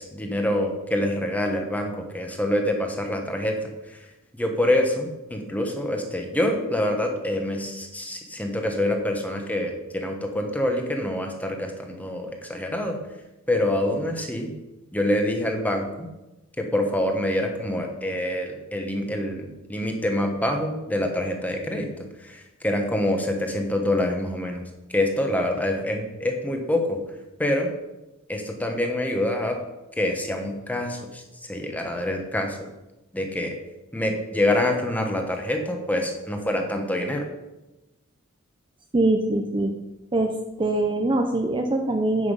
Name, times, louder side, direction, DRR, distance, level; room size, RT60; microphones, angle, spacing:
voice 1, 0.0-4.0 4.3-13.0 13.5-14.5 14.9-16.1 16.6-21.9 22.2-24.6 24.9-27.0 27.4-27.7 28.3-29.6 30.0-32.6 33.1-33.5 33.9-37.2, left 1 dB, 10° left, 3 dB, 1.2 m, -26 dB
voice 2, 38.9-39.8 40.1-42.3, right 2 dB, 25° right, 5 dB, 0.6 m, -23 dB
9.4 x 6.0 x 5.5 m, 1.0 s
head